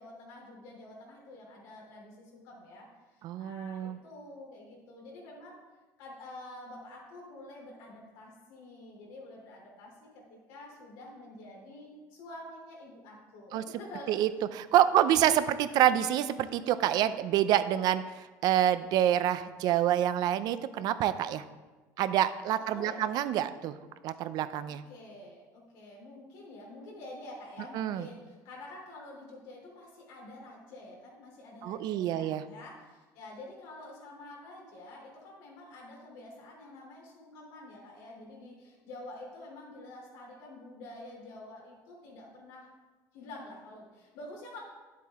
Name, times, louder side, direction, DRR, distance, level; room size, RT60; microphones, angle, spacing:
voice 1, 0.0-5.6 6.0-14.1 14.8-15.1 22.6-23.1 24.6-42.7 43.1-44.6, left 2 dB, 85° left, -2 dB, 3.1 m, -48 dB
voice 2, 3.2-4.0 13.5-13.6 14.1-21.4 22.0-23.8 24.0-24.8 27.7-28.1 31.6-32.4, right 11 dB, 60° right, 13 dB, 0.5 m, -27 dB
10.0 x 7.4 x 3.6 m, 1.2 s
cardioid pair, 140°, 8 cm